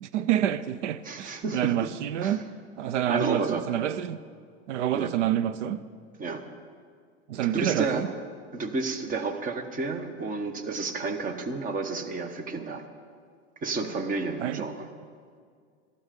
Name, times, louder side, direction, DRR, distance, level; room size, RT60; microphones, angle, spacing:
voice 1, 0.0-2.4 2.8-4.2 4.7-5.8 7.3-8.1 14.4-14.6, right 11 dB, 85° right, 0.6 m, -28 dB
voice 2, 1.0-1.7 2.2-2.4 3.1-3.7 5.0-5.1 6.2-6.4 7.5-8.0 8.5-12.8 13.6-14.9, right 3 dB, 25° right, 1.2 m, -31 dB
15.0 x 13.0 x 5.2 m
supercardioid pair, 120°, 35 cm